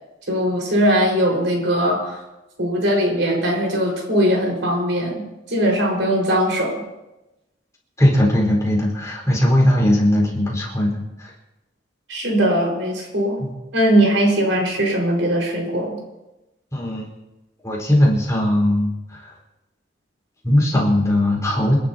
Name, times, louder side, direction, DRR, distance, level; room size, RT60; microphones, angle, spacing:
voice 1, 0.3-2.2 2.6-5.2 5.5-6.8 12.1-13.4 13.7-16.0, equal, 85° right, 0 dB, 5.0 m, -20 dB
voice 2, 8.0-11.3 13.4-13.5 16.7-17.1 17.6-19.3 20.4-21.8, left 1 dB, 15° left, -2 dB, 4.5 m, -19 dB
28.5 x 11.5 x 2.9 m, 1.0 s
head